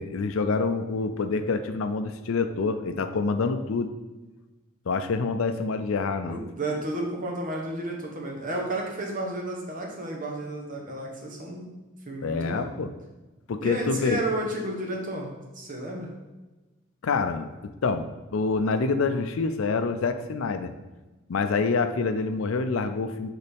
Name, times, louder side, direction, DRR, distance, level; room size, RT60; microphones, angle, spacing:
voice 1, 0.0-3.9 4.9-6.4 12.2-12.9 13.5-14.2 17.0-17.5 17.8-20.7 21.3-23.3, left 4 dB, 75° left, 9 dB, 0.5 m, -26 dB
voice 2, 6.3-11.7 12.0-12.7 13.6-16.1, right 1 dB, 40° right, 0 dB, 1.1 m, -32 dB
6.7 x 4.0 x 3.5 m, 1.1 s
head